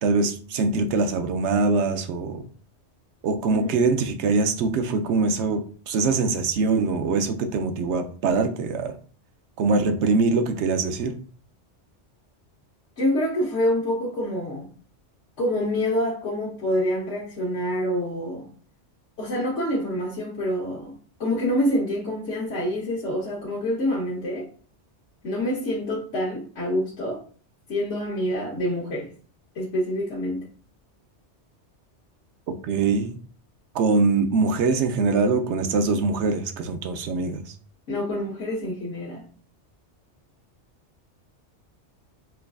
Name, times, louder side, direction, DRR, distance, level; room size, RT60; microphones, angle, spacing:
voice 1, 0.0-2.4 3.2-8.9 9.6-11.2 32.6-33.2 33.7-37.4, right 4 dB, 75° right, 7 dB, 0.9 m, -23 dB
voice 2, 3.5-3.8 13.0-14.6 15.4-18.5 19.2-20.9 21.2-24.5 25.2-27.2 27.7-29.1 29.5-30.4 37.9-39.2, left 1 dB, 85° left, -4 dB, 1.2 m, -26 dB
5.7 x 2.4 x 2.3 m, 0.43 s
omnidirectional pair, 1.2 m